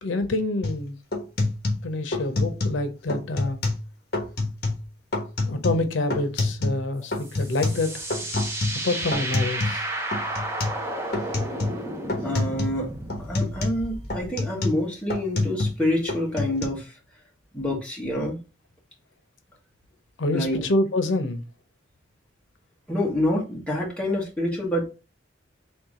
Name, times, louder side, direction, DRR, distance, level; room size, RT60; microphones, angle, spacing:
voice 1, 0.0-1.0 1.8-3.6 5.4-8.0 8.8-9.9 20.2-21.4, left 2 dB, 85° left, 0.7 m, -26 dB
sound 1, 0.6-0.8 1.1-2.8 3.1-3.9 4.1-4.8 5.1-6.9 7.1-9.8 10.1-10.8 11.1-11.8 12.1-12.8 13.1-15.8 16.1-16.6, left 2 dB, 55° left, 1.3 m, -27 dB
sound 2, 7.1-14.3, right 1 dB, 15° right, 0.8 m, -33 dB
voice 2, 12.2-12.9 13.2-16.9 17.5-18.4 20.3-20.6 22.9-24.8, left 1 dB, 5° left, 1.5 m, -27 dB
4.6 x 3.1 x 3.6 m
head